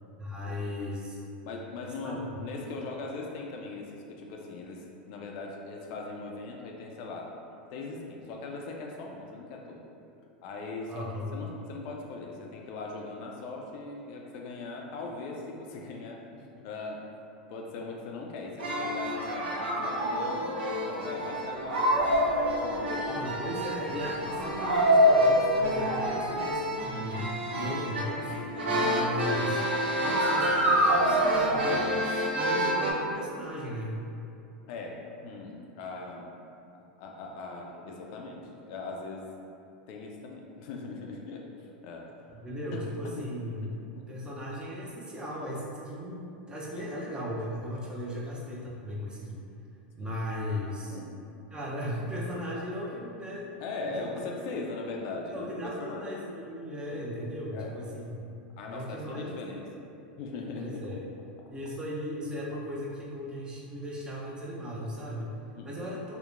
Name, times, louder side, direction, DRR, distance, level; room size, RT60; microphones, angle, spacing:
voice 1, 0.2-1.2 2.0-2.3 10.9-11.4 23.1-28.3 28.7-29.6 30.0-34.0 42.3-43.7 44.1-49.5 49.9-51.0 51.5-53.5 53.8-54.1 55.3-58.3 58.7-59.4 60.6-61.0 61.5-65.4 65.6-66.2, equal, 15° right, -5 dB, 0.5 m, -37 dB
voice 2, 1.4-7.3 7.7-9.8 10.4-17.0 17.5-22.3 22.6-23.3 34.7-36.3 36.8-39.2 39.9-42.4 42.7-42.8 43.2-43.3 43.6-44.1 46.7-46.9 50.0-50.1 50.9-51.1 53.6-55.5 55.8-56.1 56.9-57.0 57.5-57.7 58.6-59.6 60.2-60.8 65.5-65.7, left 3 dB, 55° left, 0 dB, 0.3 m, -40 dB
sound 1, 18.6-32.9, equal, 85° right, 0.4 m, -27 dB
2.8 x 2.1 x 2.4 m, 2.6 s
hypercardioid pair, 100°, 5 cm